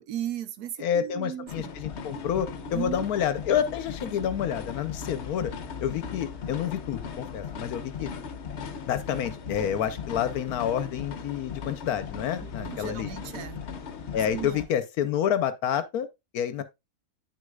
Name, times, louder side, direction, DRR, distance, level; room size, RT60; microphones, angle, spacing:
voice 1, 0.0-1.7 2.7-3.1 12.4-13.6 14.3-14.6, right 11 dB, 85° right, 1.3 m, -36 dB
voice 2, 0.8-5.5 5.8-8.1 8.9-13.1 14.1-16.1 16.3-16.6, left 9 dB, 80° left, 1.2 m, -29 dB
sound 1, 1.5-14.7, left 6 dB, 55° left, 1.0 m, -38 dB
8.7 x 6.4 x 2.3 m
omnidirectional pair, 1.6 m